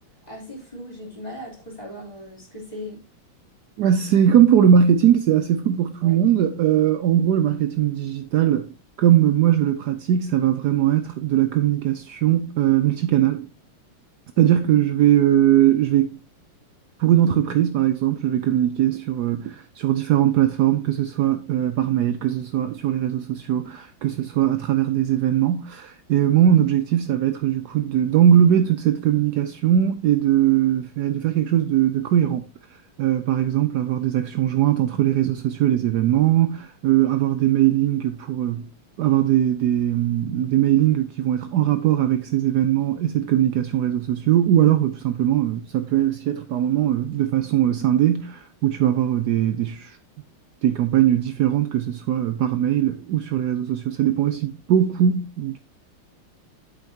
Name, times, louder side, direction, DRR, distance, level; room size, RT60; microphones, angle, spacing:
voice 1, 0.3-3.0 6.0-6.1 14.3-14.5, equal, 20° left, 3.3 m, -38 dB
voice 2, 3.8-13.5 14.4-16.2 17.0-32.4 33.0-38.7 39.0-50.0 50.6-55.6, right 11 dB, 85° right, 0.9 m, -20 dB
8.2 x 7.8 x 2.8 m
omnidirectional pair, 2.3 m